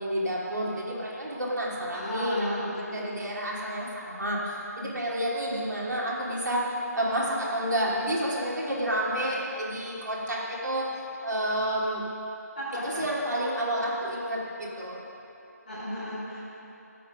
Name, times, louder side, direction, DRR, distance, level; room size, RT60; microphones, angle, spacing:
voice 1, 0.0-10.9 11.2-12.0 12.8-15.0, right 1 dB, 85° right, -4 dB, 2.9 m, -30 dB
voice 2, 1.9-2.7 12.6-12.7 15.7-16.4, equal, 30° left, -13 dB, 3.1 m, -33 dB
14.5 x 8.5 x 5.2 m, 2.9 s
figure-of-eight pair, 175°, 9 cm